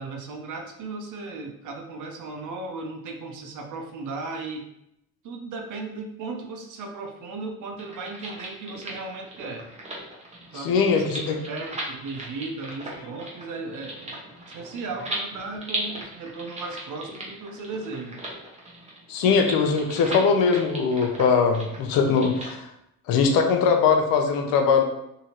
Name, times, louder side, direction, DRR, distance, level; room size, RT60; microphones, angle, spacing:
voice 1, 0.0-4.7 5.2-9.7 10.5-11.0 11.5-14.2 14.5-18.2, right 3 dB, 50° right, 3 dB, 0.7 m, -36 dB
sound 1, 7.7-22.5, right 1 dB, 15° right, 0.9 m, -38 dB
voice 2, 10.5-11.4 19.1-22.7 23.1-24.8, left 5 dB, 65° left, 4 dB, 0.6 m, -21 dB
2.8 x 2.7 x 2.9 m, 0.80 s
supercardioid pair, 90°, 38 cm